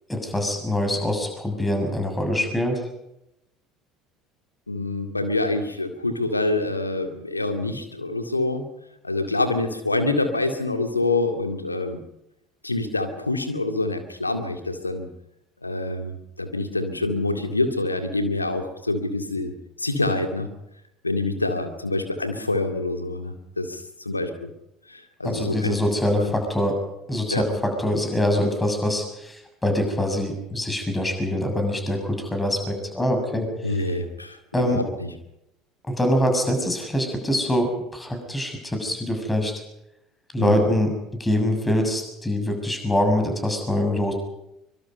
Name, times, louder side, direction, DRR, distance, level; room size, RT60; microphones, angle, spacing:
voice 1, 0.1-2.8 25.2-26.8 27.1-33.7 34.5-34.8 35.9-39.5 40.3-40.9 41.2-44.1, left 1 dB, 10° left, 5 dB, 6.9 m, -24 dB
voice 2, 4.7-8.7 9.0-12.0 12.6-15.1 15.6-19.5 19.8-20.5 21.0-24.5 24.9-25.8 26.2-26.3 27.3-27.4 33.6-34.4 34.7-35.1 40.4-40.6, left 2 dB, 90° left, 6 dB, 2.1 m, -26 dB
24.5 x 24.0 x 5.5 m, 0.85 s
figure-of-eight pair, 65°, 0 cm